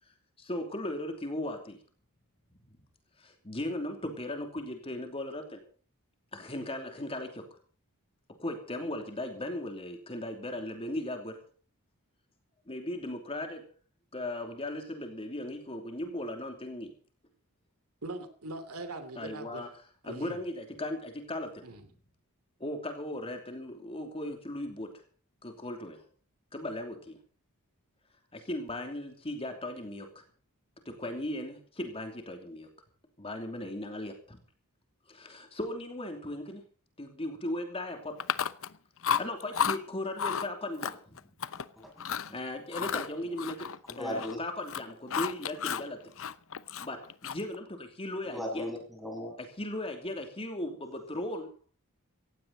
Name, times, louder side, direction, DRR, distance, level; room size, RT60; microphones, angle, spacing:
voice 1, 0.4-1.8 3.2-5.6 6.3-7.5 8.4-11.4 12.7-13.7 14.1-16.9 19.2-19.7 20.0-21.7 22.6-24.9 25.4-26.0 26.5-27.2 28.3-30.2 30.8-32.7 33.2-34.4 35.1-36.6 37.0-38.2 39.1-41.2 42.3-43.7 44.0-46.0 46.8-48.6 49.4-51.5, left 1 dB, 25° left, 4 dB, 2.9 m, -37 dB
voice 2, 18.0-19.6 20.1-20.4 21.6-21.9, right 2 dB, 75° right, 10 dB, 2.9 m, -41 dB
Chewing mastication, 38.2-38.7 39.0-39.8 40.2-40.5 40.8-41.6 42.0-42.3 42.7-44.4 44.6-45.9 46.2-47.5, left 7 dB, 65° left, 0.8 m, -32 dB
voice 3, 43.9-44.4 48.3-49.3, left 1 dB, ahead, 1 dB, 7.2 m, -36 dB
18.0 x 16.0 x 4.1 m, 0.39 s
head